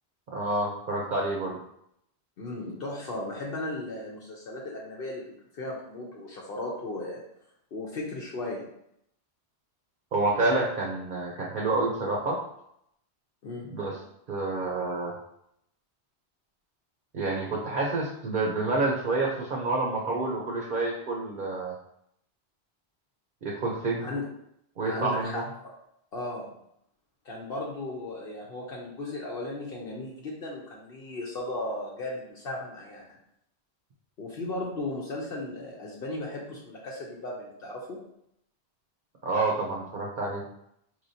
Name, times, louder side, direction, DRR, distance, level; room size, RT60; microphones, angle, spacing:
voice 1, 0.3-1.6 10.1-12.4 13.7-14.0 14.3-15.1 17.1-21.7 23.4-24.1 24.8-25.4 39.2-40.4, right 2 dB, 55° right, -2 dB, 0.8 m, -28 dB
voice 2, 2.4-7.2 7.7-8.7 13.4-13.7 24.0-24.3 24.8-25.4 26.1-26.5 27.2-33.2 34.2-38.0, left 2 dB, 65° left, -3 dB, 0.9 m, -36 dB
4.3 x 3.2 x 2.7 m, 0.75 s
omnidirectional pair, 1.1 m